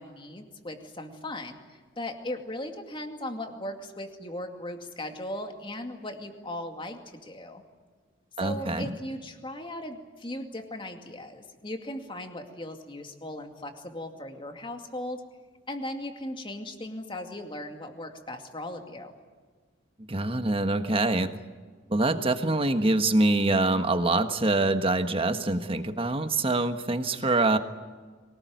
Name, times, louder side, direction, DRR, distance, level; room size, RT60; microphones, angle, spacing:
voice 1, 0.0-7.6 8.4-15.2 15.7-19.1, left 1 dB, 25° left, 5 dB, 2.3 m, -38 dB
voice 2, 8.4-9.0 20.0-21.3 21.9-27.6, right 2 dB, 30° right, 8 dB, 1.4 m, -25 dB
24.0 x 19.0 x 9.4 m, 1.5 s
head